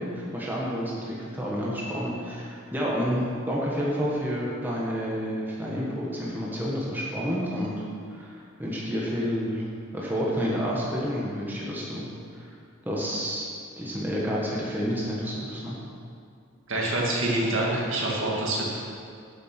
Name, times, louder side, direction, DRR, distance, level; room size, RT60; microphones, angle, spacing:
voice 1, 0.0-7.8 8.1-9.7 9.9-12.5 12.8-13.5 13.8-15.8, equal, 10° right, -5 dB, 1.4 m, -29 dB
voice 2, 16.7-18.8, right 1 dB, 60° right, -3 dB, 2.2 m, -26 dB
9.7 x 7.3 x 6.0 m, 2.3 s
head